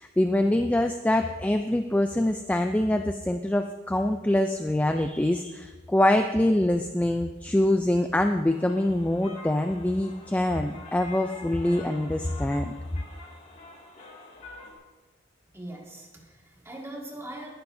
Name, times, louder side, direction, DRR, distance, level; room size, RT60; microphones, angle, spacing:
voice 1, 0.0-12.7, left 1 dB, 10° left, 6 dB, 0.3 m, -24 dB
sound 1, 8.4-14.7, left 3 dB, 35° left, 2.0 m, -46 dB
voice 2, 15.5-17.5, right 1 dB, 15° right, -1 dB, 1.9 m, -41 dB
19.5 x 10.5 x 2.7 m, 1.3 s
head